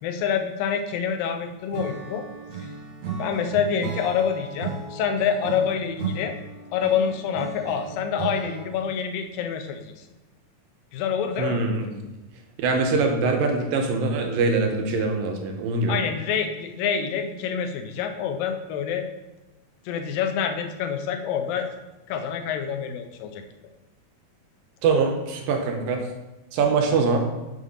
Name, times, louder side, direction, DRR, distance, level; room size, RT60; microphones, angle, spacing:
voice 1, 0.0-2.3 2.6-2.7 3.2-6.4 6.7-9.9 10.9-11.6 15.9-19.1 19.9-21.7 22.1-23.4, left 7 dB, 85° left, 5 dB, 2.4 m, -27 dB
Acoustic guitar / Strum, 1.7-8.9, right 5 dB, 65° right, 2.2 m, -35 dB
voice 2, 11.4-11.9 12.6-16.0 24.8-26.0 26.5-27.2, right 4 dB, 85° right, 3 dB, 2.6 m, -23 dB
6.7 x 3.7 x 5.4 m, 1.1 s
omnidirectional pair, 4.0 m